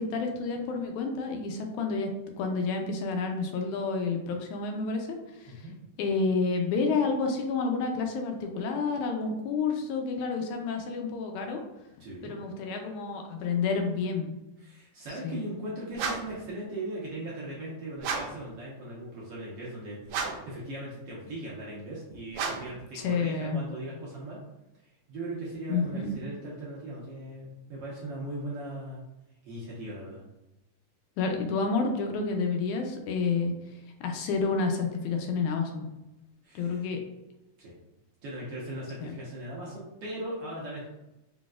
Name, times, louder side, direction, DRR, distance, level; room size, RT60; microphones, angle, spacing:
voice 1, 0.0-2.1 2.4-5.6 6.0-11.6 12.2-14.3 15.2-15.4 23.0-23.6 25.7-26.1 31.2-33.5 34.0-35.9 36.6-37.0 39.0-39.1, left 4 dB, 80° left, 3 dB, 1.9 m, -29 dB
voice 2, 12.0-12.3 14.6-24.4 24.8-29.0 29.4-30.2 36.4-36.9 37.6-37.8 38.2-40.9, right 1 dB, 65° right, -5 dB, 1.6 m, -39 dB
sound 1, 15.9-16.4 18.0-18.5 20.1-20.6 22.3-22.8, right 5 dB, 80° right, 2.0 m, -33 dB
4.9 x 4.0 x 2.4 m, 0.95 s
omnidirectional pair, 3.6 m